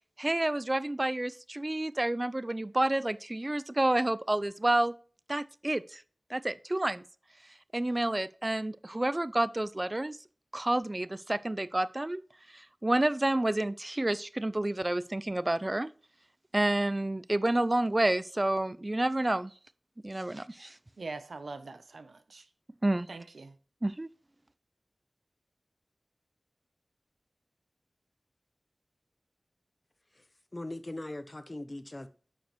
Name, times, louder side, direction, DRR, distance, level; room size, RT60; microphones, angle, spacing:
voice 1, 0.2-4.9 5.3-6.0 6.3-7.0 7.7-10.2 10.5-12.2 12.5-15.9 16.5-19.5 20.0-20.7 22.8-23.1 23.8-24.1, right 1 dB, 25° right, 0.4 m, -29 dB
voice 2, 21.0-22.5 23.1-23.6, right 3 dB, 85° right, 0.7 m, -43 dB
voice 3, 30.5-32.1, left 1 dB, 30° left, 0.6 m, -40 dB
9.0 x 5.2 x 3.0 m
wide cardioid pair, 70°, 0 cm